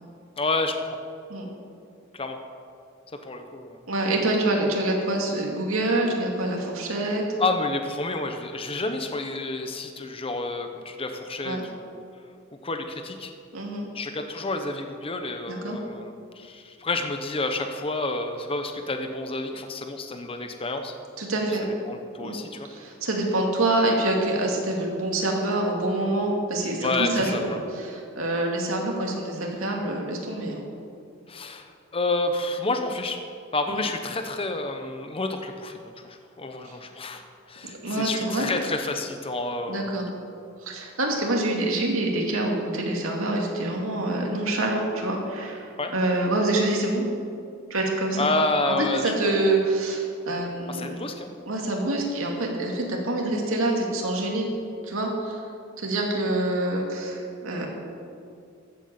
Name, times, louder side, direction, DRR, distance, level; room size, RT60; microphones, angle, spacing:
voice 1, 0.4-1.0 2.1-2.4 3.1-3.8 7.4-12.0 12.6-13.3 13.9-20.9 21.5-22.7 26.7-27.6 31.3-33.2 33.5-37.2 37.5-39.9 45.8-45.9 48.2-49.3 50.7-51.3, left 2 dB, 30° left, 6 dB, 0.8 m, -29 dB
voice 2, 3.9-7.2 11.4-11.6 13.5-13.9 15.5-15.8 21.2-21.7 22.2-22.4 22.7-30.6 33.7-33.8 37.8-38.5 39.7-40.0 40.6-47.0 47.7-48.3 48.7-51.0 51.5-54.5 54.8-55.4 55.8-57.7, right 2 dB, 85° right, 0 dB, 2.5 m, -26 dB
14.0 x 8.1 x 7.0 m, 2.4 s
head